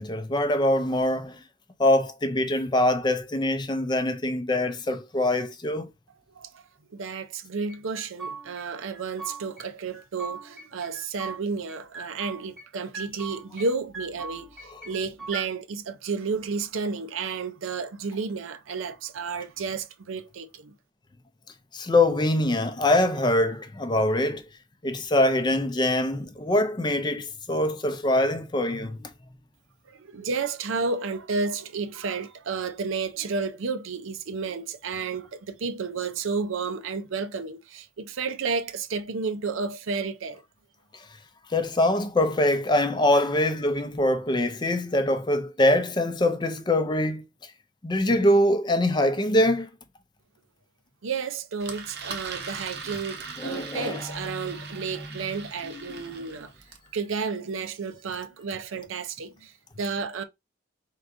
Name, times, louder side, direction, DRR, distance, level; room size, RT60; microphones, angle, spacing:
voice 1, 0.0-1.4 1.8-5.9 21.7-24.4 24.8-29.1 41.5-47.2 47.8-49.7 53.4-54.0 55.9-56.0, left 1 dB, 20° left, 0.4 m, -23 dB
voice 2, 6.3-20.7 29.9-40.4 51.0-56.5 56.9-60.2, right 4 dB, 80° right, 0.6 m, -32 dB
sound 1, 7.7-8.7 8.9-9.7 9.9-11.4 11.7-12.7 12.9-13.7 13.9-15.5, right 3 dB, 5° left, 0.8 m, -39 dB
Engine, 51.6-56.9, right 5 dB, 55° right, 0.8 m, -40 dB
4.5 x 3.7 x 2.6 m
head